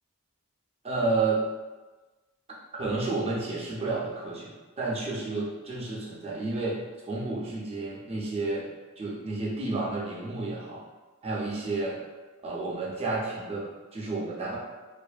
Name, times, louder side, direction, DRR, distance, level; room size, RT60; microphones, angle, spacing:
voice 1, 0.8-1.4 2.7-8.7 9.0-10.8 11.2-12.0 12.4-14.6, right 3 dB, 25° right, -5 dB, 0.6 m, -31 dB
2.5 x 2.5 x 2.4 m, 1.2 s
head